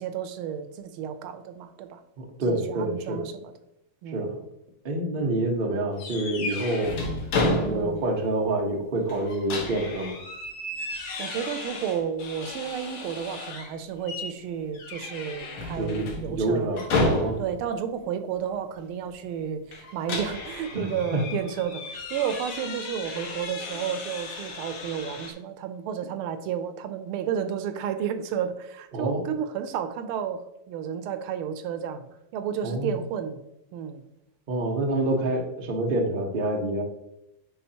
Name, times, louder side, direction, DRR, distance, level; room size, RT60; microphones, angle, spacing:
voice 1, 0.0-2.0 2.5-3.5 4.0-4.3 7.6-8.0 11.2-16.7 17.4-21.8 22.1-32.1 32.3-33.4 33.7-34.0, right 8 dB, 90° right, 10 dB, 1.5 m, -32 dB
voice 2, 2.2-3.2 4.1-4.4 4.8-6.9 7.7-10.2 15.8-17.4 20.7-21.2 28.9-29.2 32.6-32.9 34.5-36.8, right 2 dB, 40° right, 2 dB, 0.7 m, -27 dB
sound 1, 6.0-8.1 8.5-8.6 9.1-13.7 14.1-14.4 14.7-17.7 19.7-25.3, left 2 dB, 85° left, 2.0 m, -32 dB
9.7 x 3.9 x 2.8 m, 0.85 s
omnidirectional pair, 2.3 m